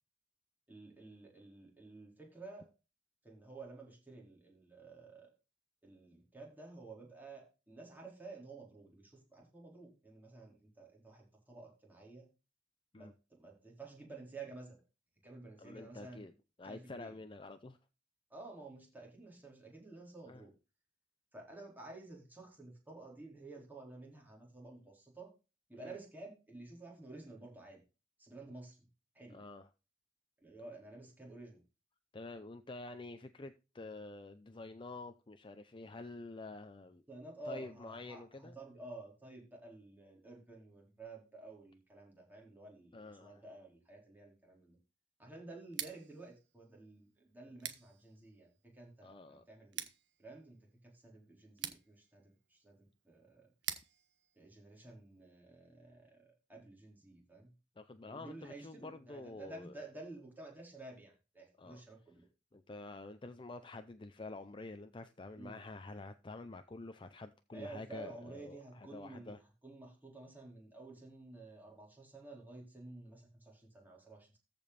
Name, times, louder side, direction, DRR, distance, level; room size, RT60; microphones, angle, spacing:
voice 1, 0.7-2.7 3.2-5.3 5.8-12.3 12.9-14.8 15.2-16.2 16.6-17.1 18.3-20.5 21.3-25.3 25.7-27.8 28.2-28.9 29.1-29.4 30.4-31.6 37.1-44.8 45.2-49.9 50.2-53.5 54.4-57.5 58.0-62.3 65.4-65.6 67.5-74.4, right 2 dB, 10° right, 4.3 m, -52 dB
voice 2, 15.6-16.3 16.6-17.8 20.3-20.4 25.8-26.0 29.3-29.7 32.1-37.0 37.5-38.6 42.9-43.4 49.0-49.4 57.8-59.7 61.6-61.8 62.5-69.4, left 2 dB, 30° left, 0.6 m, -48 dB
Scissors, 45.6-55.5, right 11 dB, 85° right, 1.3 m, -49 dB
14.0 x 5.3 x 4.2 m
head